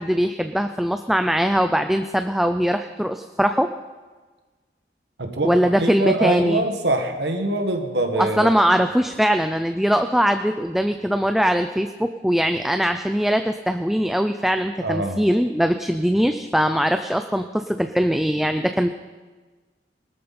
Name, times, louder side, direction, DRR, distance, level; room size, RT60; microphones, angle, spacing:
voice 1, 0.0-3.7 5.4-6.6 8.2-18.9, equal, ahead, 7 dB, 0.4 m, -21 dB
voice 2, 5.2-8.5 14.8-15.2, right 2 dB, 80° right, 4 dB, 1.9 m, -24 dB
20.0 x 13.0 x 4.3 m, 1.3 s
head